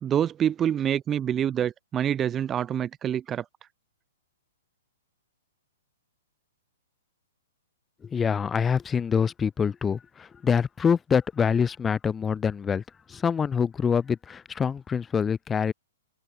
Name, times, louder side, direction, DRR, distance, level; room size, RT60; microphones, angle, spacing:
voice 1, 0.0-3.4, right 9 dB, 20° right, 1.3 m, -26 dB
voice 2, 8.0-12.8 13.1-15.7, left 6 dB, 15° left, 2.6 m, -25 dB
hypercardioid pair, 120°, 0 cm